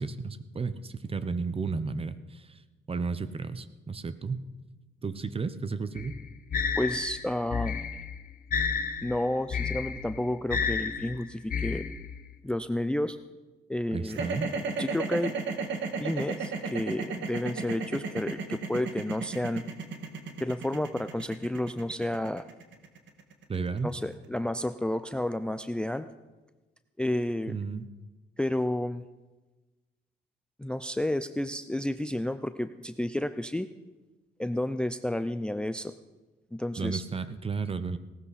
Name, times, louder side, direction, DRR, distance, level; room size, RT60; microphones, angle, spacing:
voice 1, 0.0-2.6 2.9-4.5 5.0-6.2 13.9-14.5 23.5-23.9 27.5-27.9 36.8-38.0, right 4 dB, 30° right, 13 dB, 0.9 m, -33 dB
sound 1, 6.0-12.3, left 6 dB, 45° left, 1.2 m, -32 dB
voice 2, 6.8-7.8 9.0-11.8 12.4-13.2 13.7-14.2 14.8-15.4 16.0-19.6 20.4-22.4 23.8-26.1 27.0-27.6 28.4-29.0 30.6-33.7 34.4-35.9 36.5-37.0, left 1 dB, 5° left, 12 dB, 0.5 m, -31 dB
sound 2, 14.1-24.3, right 4 dB, 70° right, 1.8 m, -34 dB
17.5 x 13.0 x 4.2 m, 1.2 s
cardioid pair, 90°, 20 cm